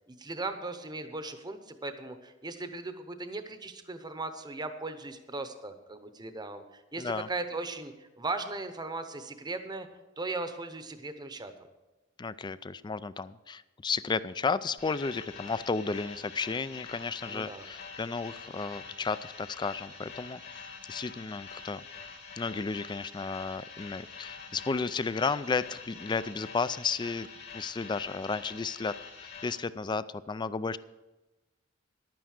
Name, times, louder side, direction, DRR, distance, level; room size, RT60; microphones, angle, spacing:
voice 1, 0.1-9.9 10.2-11.5 17.3-17.7, right 3 dB, 20° right, 9 dB, 0.8 m, -38 dB
voice 2, 7.0-7.3 12.2-20.4 20.9-21.9 22.4-27.3 27.5-30.8, left 4 dB, 20° left, 16 dB, 0.3 m, -33 dB
sound 1, 14.8-29.5, left 5 dB, 60° left, 2.4 m, -46 dB
11.5 x 9.2 x 6.4 m, 1.1 s
head